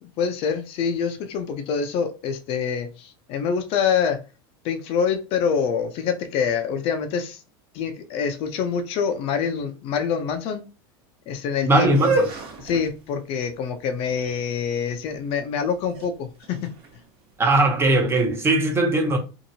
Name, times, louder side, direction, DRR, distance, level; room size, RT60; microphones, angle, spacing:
voice 1, 0.0-4.2 4.6-7.4 7.7-10.6 11.3-11.9 12.6-16.7, left 6 dB, 50° left, 0.5 m, -26 dB
voice 2, 11.7-12.3 17.4-19.2, right 2 dB, 20° right, 0.7 m, -19 dB
sound 1, 11.9-17.8, right 3 dB, 45° right, 1.0 m, -31 dB
2.8 x 2.5 x 2.7 m
supercardioid pair, 120°, 13 cm